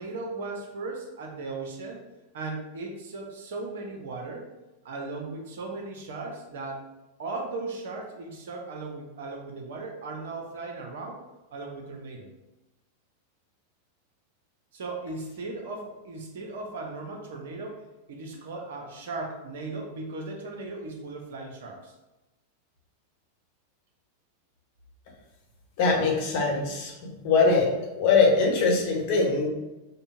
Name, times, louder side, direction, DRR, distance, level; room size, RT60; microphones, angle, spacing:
voice 1, 0.0-2.0 2.3-4.5 4.8-6.8 7.2-11.2 11.5-12.3 14.7-17.8 18.1-21.9, right 3 dB, 55° right, 2 dB, 0.7 m, -37 dB
voice 2, 25.8-29.5, left 4 dB, 45° left, -1 dB, 1.0 m, -22 dB
5.2 x 2.1 x 2.6 m, 1.0 s
figure-of-eight pair, 90°, 0 cm